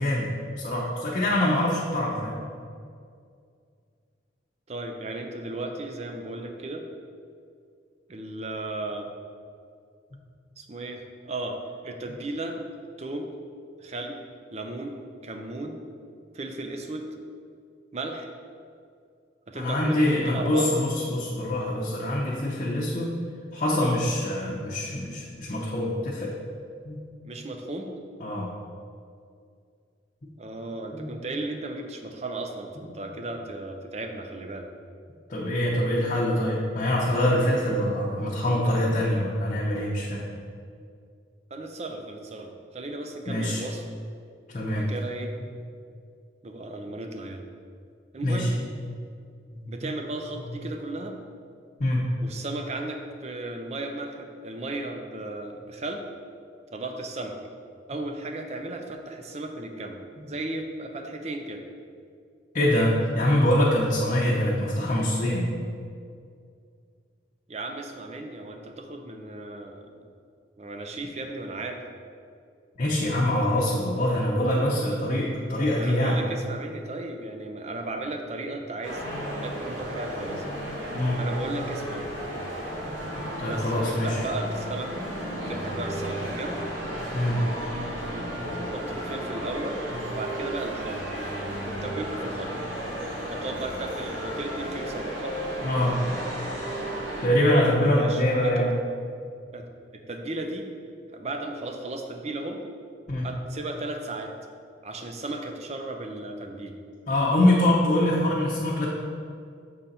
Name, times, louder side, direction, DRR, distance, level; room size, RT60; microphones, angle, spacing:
voice 1, 0.0-2.4 19.5-23.2 23.5-26.3 26.9-27.0 28.2-28.5 30.9-31.1 35.3-40.2 43.3-43.6 44.5-44.8 48.2-48.5 49.5-49.6 51.8-52.1 60.2-60.3 62.5-65.5 72.8-76.2 80.9-81.2 83.4-84.2 87.1-87.4 95.6-96.0 97.2-98.7 103.1-103.3 107.1-108.9, left 1 dB, 40° left, -5 dB, 0.7 m, -24 dB
voice 2, 4.7-6.9 8.1-9.1 10.6-12.6 13.0-13.3 13.8-14.2 14.5-15.0 15.2-15.8 16.3-17.1 17.9-18.3 19.5-20.0 20.3-20.7 24.4-24.6 27.2-27.9 30.4-34.7 41.5-44.0 44.7-45.3 46.4-47.4 48.1-48.5 49.7-51.2 52.2-56.0 56.7-57.4 57.9-60.0 60.2-61.6 67.5-70.1 70.6-71.8 75.8-79.1 79.4-80.4 81.2-82.1 83.5-85.0 85.5-86.6 88.1-88.3 88.6-89.8 90.1-91.0 91.6-92.5 93.3-95.4 97.9-98.7 99.5-99.7 99.9-100.7 101.1-102.6 103.2-104.3 104.8-106.8, right 2 dB, 35° right, 4 dB, 0.5 m, -35 dB
sound 1, 78.8-97.3, equal, 85° right, 1.3 m, -33 dB
6.8 x 3.9 x 4.2 m, 2.3 s
head